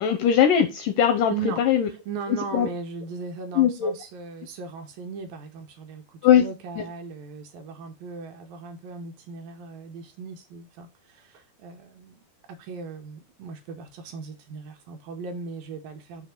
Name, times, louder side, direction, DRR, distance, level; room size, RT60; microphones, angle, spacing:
voice 1, 0.0-1.9 2.3-2.7 3.6-3.9 6.2-6.4 6.8-6.9, left 9 dB, 80° left, 1.9 m, -20 dB
voice 2, 1.3-1.6 2.1-16.3, right 5 dB, 75° right, 2.4 m, -38 dB
6.8 x 2.8 x 5.7 m
omnidirectional pair, 4.4 m